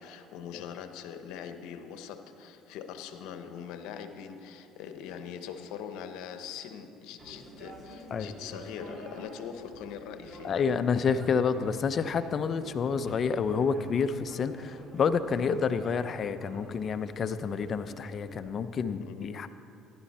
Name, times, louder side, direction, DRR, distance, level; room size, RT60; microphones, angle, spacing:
voice 1, 0.0-10.7 19.0-19.3, left 8 dB, 75° left, 8 dB, 0.9 m, -42 dB
sound 1, 7.2-18.4, right 1 dB, 35° right, 3.0 m, -49 dB
voice 2, 10.4-19.5, left 6 dB, 45° left, 11 dB, 0.6 m, -29 dB
14.5 x 11.0 x 4.3 m, 2.6 s
supercardioid pair, 80°, 0 cm